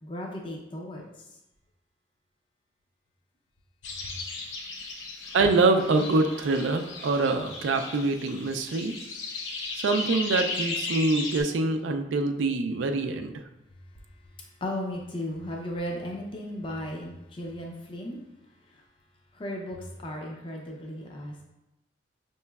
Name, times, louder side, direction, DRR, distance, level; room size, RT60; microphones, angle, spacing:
voice 1, 0.0-1.2 14.2-18.2 18.6-18.8 19.3-21.4, left 1 dB, 25° left, 0 dB, 0.5 m, -36 dB
sound 1, 3.8-11.4, left 3 dB, 80° left, 0.7 m, -36 dB
voice 2, 5.3-9.0 9.7-13.3, right 3 dB, 80° right, 6 dB, 0.4 m, -25 dB
5.6 x 3.0 x 2.3 m, 0.92 s
head